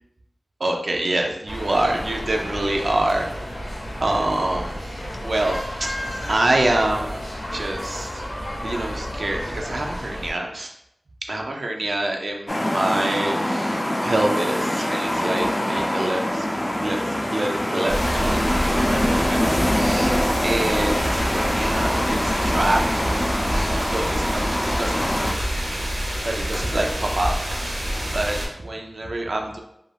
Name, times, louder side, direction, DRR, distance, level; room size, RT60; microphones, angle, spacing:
voice 1, 0.6-3.3 4.0-8.3 8.6-10.7 11.3-16.5 16.8-17.0 17.3-23.0 23.5-25.5 26.2-27.8 28.1-29.6, right 1 dB, 75° right, 1 dB, 0.3 m, -26 dB
sound 1, 1.5-10.3, equal, 85° left, 0.7 m, -32 dB
sound 2, 12.5-25.3, left 1 dB, 25° left, 0.4 m, -24 dB
sound 3, 17.9-28.5, equal, 90° right, 0.8 m, -27 dB
2.4 x 2.2 x 3.3 m, 0.78 s
wide cardioid pair, 45°, 0 cm